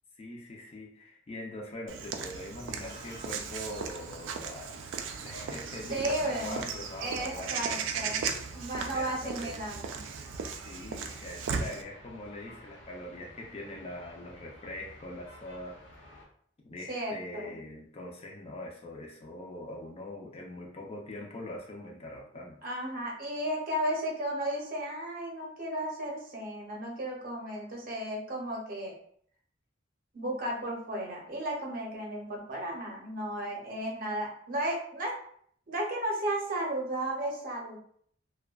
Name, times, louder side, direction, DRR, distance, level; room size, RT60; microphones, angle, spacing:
voice 1, 0.2-4.8 5.1-8.1 8.7-9.6 10.6-16.2 16.6-22.6, left 1 dB, 30° left, 0 dB, 0.4 m, -43 dB
Walk footsteps / Bird vocalization bird call bird song, 1.9-11.8, right 6 dB, 90° right, 0.3 m, -37 dB
sound 1, 2.8-16.2, left 1 dB, 75° left, 0.8 m, -53 dB
voice 2, 5.9-6.6 7.0-8.2 8.5-10.0 16.9-17.5 22.6-28.9 30.1-35.1 35.7-37.8, right 1 dB, 50° right, -1 dB, 0.6 m, -34 dB
2.5 x 2.2 x 2.3 m, 0.62 s
head